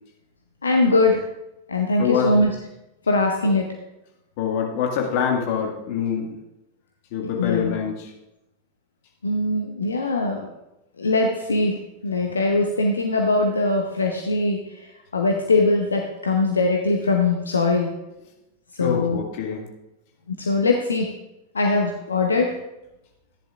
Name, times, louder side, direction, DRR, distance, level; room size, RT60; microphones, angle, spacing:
voice 1, 0.6-1.2 1.7-2.5 3.1-3.7 7.4-7.8 9.2-10.5 11.0-11.7 12.0-14.9 15.1-17.9 18.8-19.2 20.4-21.1 21.5-22.5, left 2 dB, 75° left, 2 dB, 0.9 m, -21 dB
voice 2, 2.0-2.3 4.4-6.4 7.1-8.1 18.8-19.7, left 7 dB, 50° left, 1 dB, 1.9 m, -25 dB
14.0 x 10.0 x 2.5 m, 0.92 s
figure-of-eight pair, 90°, 0 cm